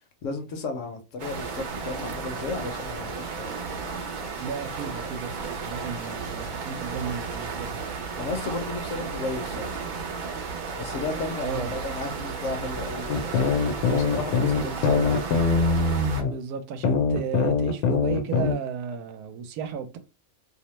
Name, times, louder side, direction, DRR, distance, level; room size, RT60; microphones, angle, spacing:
voice 1, 0.2-3.5 8.2-9.8 10.8-15.2, left 3 dB, 65° left, 0.9 m, -34 dB
sound 1, 1.2-16.2, right 5 dB, 70° right, 0.4 m, -34 dB
voice 2, 4.4-7.8 11.4-11.7 14.6-15.0 16.2-20.0, right 6 dB, 90° right, 1.1 m, -34 dB
sound 2, 13.1-16.3 16.8-18.5, left 4 dB, 85° left, 1.1 m, -23 dB
2.7 x 2.0 x 3.0 m
omnidirectional pair, 1.5 m